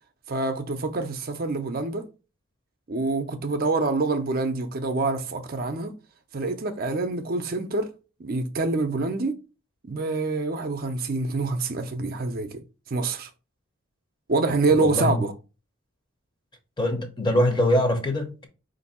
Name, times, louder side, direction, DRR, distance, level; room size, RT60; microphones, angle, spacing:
voice 1, 0.3-2.1 2.9-5.9 6.3-7.9 8.2-9.4 9.9-12.6 12.9-13.3 14.3-15.3, right 3 dB, 45° right, 0.5 m, -26 dB
voice 2, 14.8-15.2 16.8-18.5, left 1 dB, 20° left, 0.7 m, -23 dB
4.4 x 2.6 x 4.2 m
head